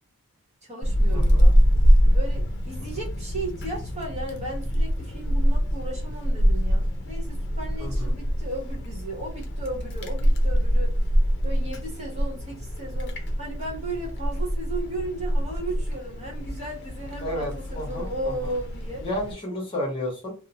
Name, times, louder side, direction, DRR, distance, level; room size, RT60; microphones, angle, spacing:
voice 1, 0.6-1.6 2.1-11.1 11.4-19.0, right 2 dB, 30° right, 1.1 m, -35 dB
Wind, 0.8-19.3, equal, 55° left, 0.6 m, -24 dB
voice 2, 1.1-1.4 7.8-8.1 17.2-18.5 19.0-20.3, left 1 dB, 25° left, 1.0 m, -32 dB
2.7 x 2.1 x 2.8 m
head